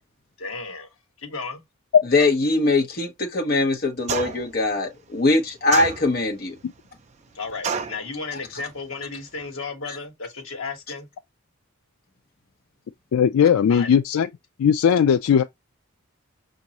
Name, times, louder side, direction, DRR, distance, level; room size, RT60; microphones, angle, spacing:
voice 1, 0.4-0.9 1.2-1.6 7.3-11.1 13.7-13.9, left 4 dB, 70° left, 1.4 m, -34 dB
voice 2, 2.0-6.5, left 2 dB, 45° left, 1.0 m, -22 dB
sound 1, 4.1-4.6 5.7-6.4 7.6-8.0, right 5 dB, 30° right, 0.4 m, -28 dB
voice 3, 13.1-14.3 14.6-15.4, left 7 dB, 85° left, 0.3 m, -17 dB
5.3 x 2.5 x 2.9 m
head